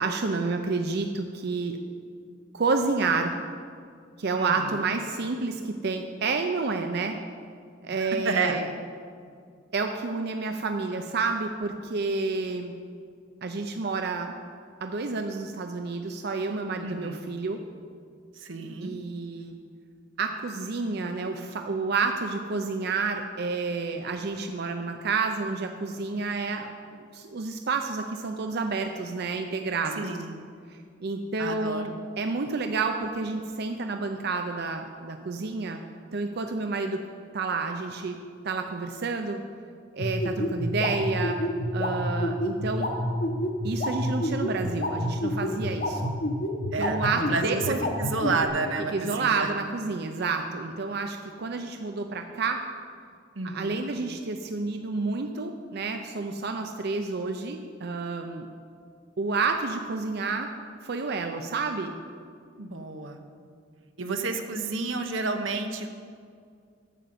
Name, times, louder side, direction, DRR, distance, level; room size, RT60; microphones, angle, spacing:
voice 1, 0.0-1.8 2.5-3.3 4.2-7.2 7.8-8.7 9.7-12.7 13.4-14.4 14.8-17.6 18.8-19.5 20.2-30.1 30.7-35.8 36.1-37.0 37.3-38.2 38.4-39.4 39.9-41.4 41.7-42.9 43.6-46.1 46.8-47.8 48.9-52.6 53.4-58.5 59.2-60.5 60.8-61.9, right 4 dB, 55° right, 5 dB, 0.5 m, -29 dB
voice 2, 4.3-4.8 8.0-8.6 16.8-17.3 18.4-18.9 30.0-30.4 31.4-32.0 46.7-49.5 53.3-53.8 62.6-63.2 64.0-65.9, right 3 dB, 85° right, 5 dB, 1.0 m, -30 dB
sound 1, 40.0-48.5, left 1 dB, 55° left, 1.1 m, -28 dB
9.1 x 6.7 x 7.7 m, 2.2 s
head